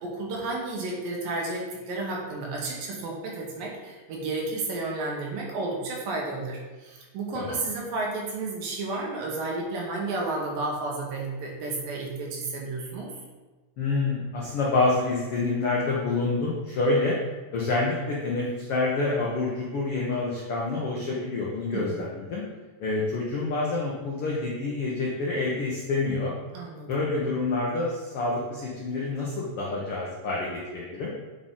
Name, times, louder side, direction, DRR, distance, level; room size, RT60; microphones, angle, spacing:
voice 1, 0.0-13.1 21.7-22.0 26.5-26.9, right 2 dB, 85° right, -2 dB, 3.0 m, -32 dB
voice 2, 13.8-17.2 17.5-22.4 22.8-26.3 26.9-31.1, left 3 dB, 80° left, -4 dB, 1.2 m, -27 dB
7.7 x 4.2 x 3.7 m, 1.3 s
omnidirectional pair, 3.9 m